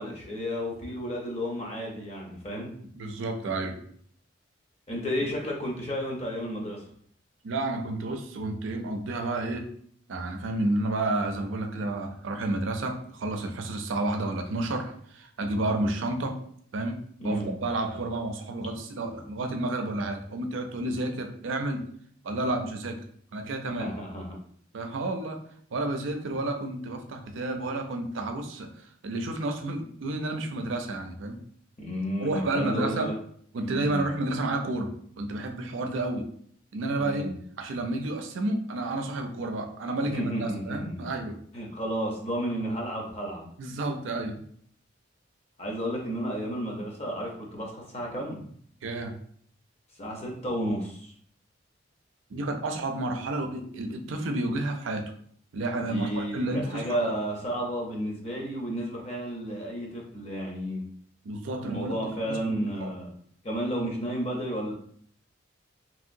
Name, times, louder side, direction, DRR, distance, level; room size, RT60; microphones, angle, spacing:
voice 1, 0.0-2.7 4.9-6.8 15.7-15.9 17.2-17.5 23.7-24.4 31.8-33.1 33.6-34.1 37.0-37.3 40.0-41.1 41.5-43.5 45.6-48.4 50.0-51.1 55.7-60.8 61.6-63.1 63.4-64.7, equal, 35° left, -1 dB, 0.7 m, -32 dB
voice 2, 3.0-3.8 7.4-9.7 10.1-16.4 16.7-21.8 22.2-23.0 23.3-24.0 24.7-25.4 25.7-28.7 29.0-31.4 32.2-33.1 33.5-34.9 35.2-36.3 36.7-37.3 37.6-41.4 43.6-44.4 48.8-49.1 52.3-55.1 55.5-57.1 61.3-62.0 62.3-62.5 62.8-62.9, right 2 dB, 80° right, 5 dB, 0.5 m, -30 dB
2.9 x 2.8 x 2.6 m, 0.62 s
head